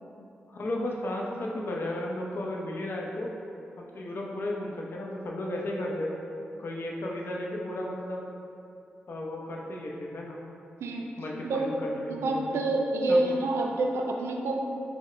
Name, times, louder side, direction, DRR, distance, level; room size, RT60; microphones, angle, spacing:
voice 1, 0.5-3.3 3.8-6.1 6.6-8.2 9.1-10.4 11.2-12.6 13.1-13.2, left 1 dB, 60° left, -2 dB, 0.6 m, -34 dB
voice 2, 12.1-14.5, right 2 dB, 90° right, 2 dB, 0.4 m, -27 dB
5.7 x 2.1 x 3.2 m, 2.6 s
cardioid pair, 50°, 4 cm